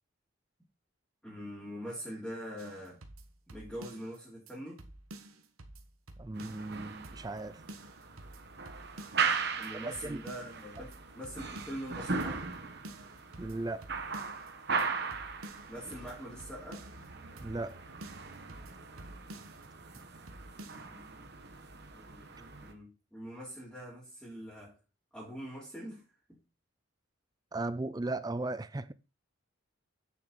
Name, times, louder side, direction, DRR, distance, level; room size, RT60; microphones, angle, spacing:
voice 1, 1.2-3.0 3.5-4.8 9.6-12.4 15.7-16.9 20.6-21.1 21.9-24.7 25.1-26.0 26.3-26.4, equal, 5° left, 3.1 m, -43 dB
sound 1, 2.6-4.2 4.5-4.6 4.8-6.8 7.0-7.4 7.7-9.3 9.6-9.7 9.9-11.9 12.2-12.6 12.8-14.5 14.8-14.9 15.1-17.1 17.4-17.7 18.0-19.7 19.9-20.0 20.3-20.9, right 1 dB, 90° right, 1.4 m, -50 dB
voice 2, 6.2-7.6 9.7-10.2 13.4-13.9 17.4-17.8 27.5-28.9, right 2 dB, 20° right, 0.4 m, -36 dB
sound 2, 6.3-22.7, right 5 dB, 50° right, 1.3 m, -39 dB
8.8 x 6.9 x 4.1 m
head